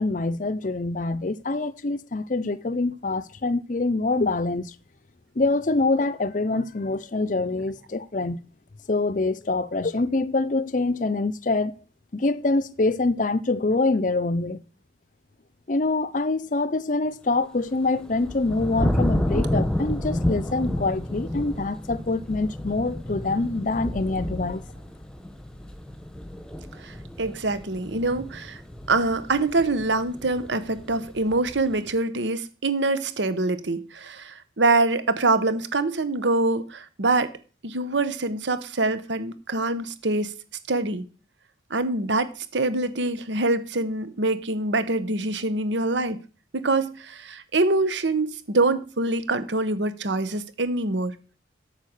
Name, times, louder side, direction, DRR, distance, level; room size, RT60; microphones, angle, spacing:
voice 1, 0.0-4.7 5.4-8.4 8.9-11.7 12.1-14.6 15.7-24.6, left 3 dB, 45° left, 0.6 m, -25 dB
sound 1, 17.7-31.9, left 1 dB, 5° left, 1.1 m, -31 dB
voice 2, 26.8-28.6 28.9-37.3 37.6-40.3 40.7-41.1 41.7-46.2 46.5-51.2, right 2 dB, 75° right, 1.0 m, -25 dB
8.3 x 7.3 x 6.5 m
head